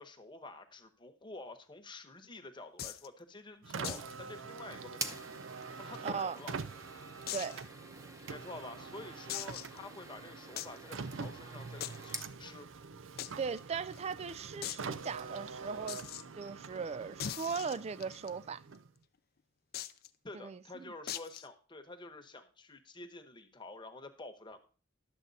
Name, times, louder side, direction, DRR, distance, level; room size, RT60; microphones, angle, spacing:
voice 1, 0.0-5.2 5.8-6.5 8.3-12.7 20.2-24.6, left 2 dB, 25° left, 1.1 m, -49 dB
sound 1, 2.8-3.1 3.8-4.1 4.4-4.5 4.9-5.0 5.6-6.4 7.3-7.6 8.2-8.3 9.3-9.8 10.6-10.8 11.8-12.2 13.2-13.3 13.6-13.7 13.9-14.0 14.6-14.9 15.9-16.2 17.2-18.3 19.7-20.1 21.1-21.5, left 11 dB, 55° left, 0.5 m, -40 dB
Car, 3.6-19.0, right 5 dB, 90° right, 0.6 m, -45 dB
sound 2, 4.9-12.3, right 2 dB, 15° right, 0.8 m, -48 dB
voice 2, 6.0-6.4 7.3-7.6 13.4-16.0 16.4-18.6 20.3-20.9, right 5 dB, 35° right, 0.3 m, -38 dB
11.5 x 7.4 x 4.1 m
head